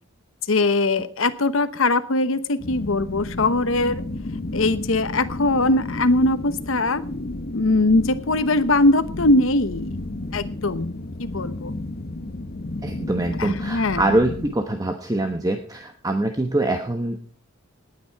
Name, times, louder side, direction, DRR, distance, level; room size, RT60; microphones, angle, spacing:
voice 1, 0.5-4.0 4.5-7.0 7.5-9.9 10.3-10.9 11.2-11.8 13.4-14.0, left 2 dB, 70° left, 12 dB, 1.0 m, -21 dB
sound 1, 2.6-14.5, left 2 dB, 45° left, 1.0 m, -32 dB
voice 2, 12.8-17.2, right 1 dB, 15° right, 5 dB, 1.0 m, -24 dB
19.0 x 8.8 x 4.7 m, 0.43 s
head